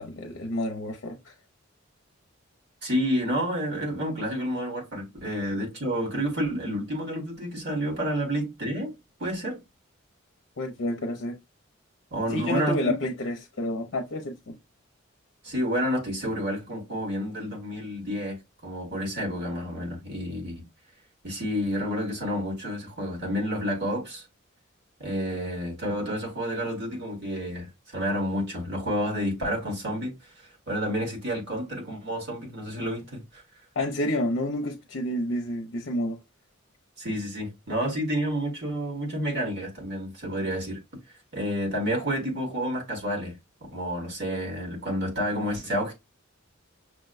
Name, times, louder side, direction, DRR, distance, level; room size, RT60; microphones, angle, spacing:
voice 1, 0.0-1.3 10.6-11.4 12.3-14.6 33.8-36.2, left 1 dB, 60° left, 0.5 m, -29 dB
voice 2, 2.8-8.9 9.2-9.6 12.1-12.8 15.4-18.4 18.6-20.6 21.2-24.2 25.0-27.7 27.9-30.1 30.7-33.2 37.0-40.8 41.3-43.3 43.7-45.9, equal, 55° right, 1.5 m, -29 dB
6.0 x 2.1 x 2.4 m
head